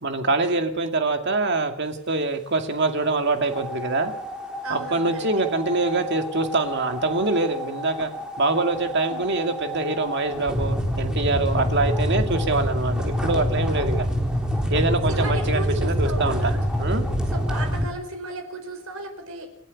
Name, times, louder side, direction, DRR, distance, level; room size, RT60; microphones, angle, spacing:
voice 1, 0.0-4.1 4.7-8.1 8.4-14.1 14.7-16.5 16.8-17.0, right 2 dB, 55° right, 6 dB, 2.3 m, -24 dB
sound 1, 3.5-17.8, equal, 5° right, 3.6 m, -27 dB
voice 2, 4.6-5.3 9.1-9.3 11.5-11.7 13.6-14.0 15.1-16.6 17.3-19.5, right 2 dB, 80° right, 6 dB, 5.2 m, -35 dB
29.0 x 11.0 x 8.5 m, 0.71 s
head